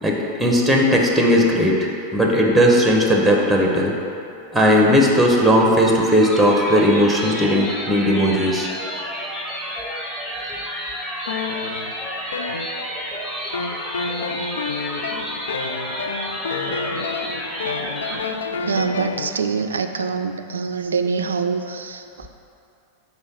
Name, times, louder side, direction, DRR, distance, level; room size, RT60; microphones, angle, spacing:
voice 1, 0.0-3.9 4.5-8.7, equal, 5° right, -1 dB, 0.9 m, -17 dB
sound 1, 6.2-18.2, equal, 15° left, 1.5 m, -30 dB
sound 2, 11.3-13.1 13.5-19.3, left 4 dB, 65° left, 0.3 m, -29 dB
voice 2, 18.6-22.3, right 5 dB, 70° right, 7 dB, 0.4 m, -25 dB
5.5 x 3.9 x 6.0 m, 2.7 s
figure-of-eight pair, 90°, 0 cm